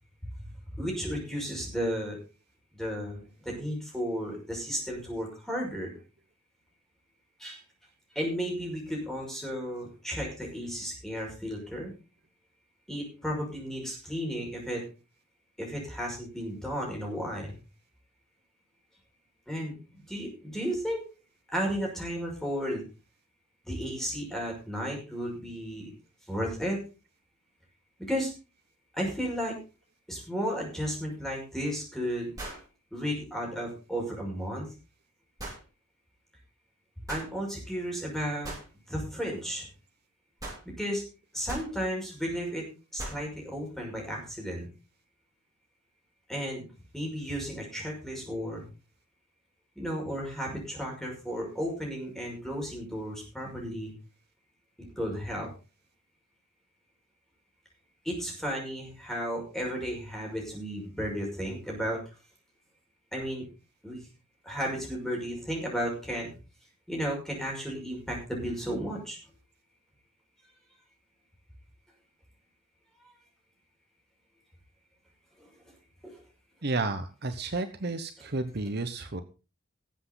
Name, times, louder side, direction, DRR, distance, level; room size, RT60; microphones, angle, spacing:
voice 1, 0.3-2.2 2.7-5.9 7.4-7.6 8.1-11.9 12.9-14.8 15.6-17.6 19.5-19.8 20.1-21.0 21.5-22.8 23.6-25.9 26.3-26.8 28.0-28.3 28.9-29.5 30.1-32.3 32.9-34.7 37.1-38.5 38.9-39.7 40.8-41.0 41.3-42.6 42.9-44.7 46.3-46.7 46.9-48.6 49.8-53.9 55.0-55.5 58.0-62.0 63.1-63.5 63.8-64.1 64.4-66.3 66.9-69.2 75.4-75.5 76.0-76.2, equal, ahead, -1 dB, 5.6 m, -33 dB
sound 1, 31.1-31.2 32.4-32.7 35.4-35.6 37.1-37.3 38.4-38.7 40.4-40.6 41.5-41.7 43.0-43.2, right 1 dB, 15° right, 6.6 m, -39 dB
voice 2, 76.6-79.2, right 3 dB, 50° right, 9 dB, 0.9 m, -32 dB
19.0 x 8.0 x 4.0 m, 0.32 s
head